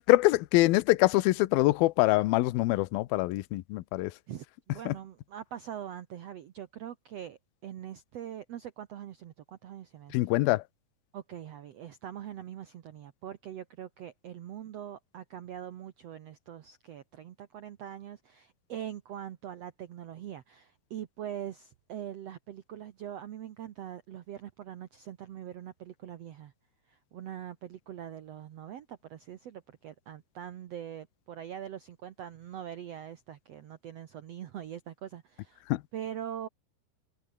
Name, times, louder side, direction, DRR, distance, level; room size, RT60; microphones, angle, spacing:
voice 1, 0.0-4.1 4.9-5.0 10.1-10.6 35.7-35.8, left 19 dB, 75° left, 2.5 m, -24 dB
voice 2, 4.3-10.3 11.1-26.5 26.9-35.6 35.9-36.5, right 10 dB, 85° right, 1.4 m, -43 dB
omnidirectional pair, 4.6 m